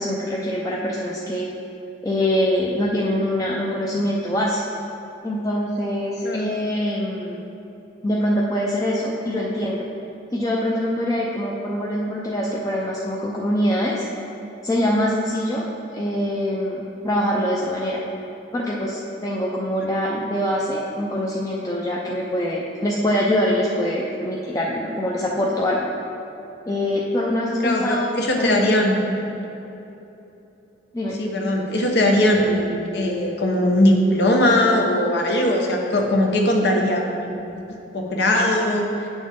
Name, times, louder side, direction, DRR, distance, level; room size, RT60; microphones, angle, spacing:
voice 1, 0.0-1.5 2.0-4.6 5.2-7.4 8.0-9.9 10.3-14.1 14.6-15.6 15.9-18.0 18.5-25.9 26.7-28.1 28.4-28.5 30.9-31.2, left 1 dB, 20° left, -4 dB, 0.5 m, -24 dB
voice 2, 27.6-29.0 31.2-37.6 37.9-39.1, left 1 dB, 70° left, 1 dB, 1.0 m, -20 dB
8.5 x 6.2 x 3.6 m, 3.0 s
head